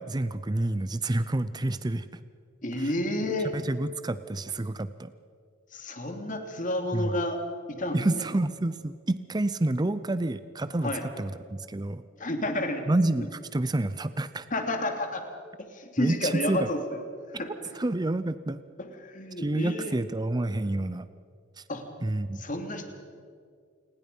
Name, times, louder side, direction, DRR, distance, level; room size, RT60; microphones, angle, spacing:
voice 1, 0.0-2.1 2.7-2.9 3.5-5.1 6.9-7.1 7.9-12.0 12.9-14.5 16.0-16.7 17.7-18.6 19.4-21.1 21.6-21.7 22.0-22.4, right 2 dB, 20° right, 13 dB, 0.5 m, -29 dB
voice 2, 2.6-3.5 5.7-7.4 7.7-8.2 10.8-11.0 12.2-12.8 13.2-13.3 14.5-15.2 15.6-16.8 17.4-17.5 18.8-19.9 21.7-21.8 22.4-22.9, left 1 dB, 40° left, 5 dB, 2.6 m, -30 dB
28.5 x 20.5 x 5.5 m, 2.2 s
head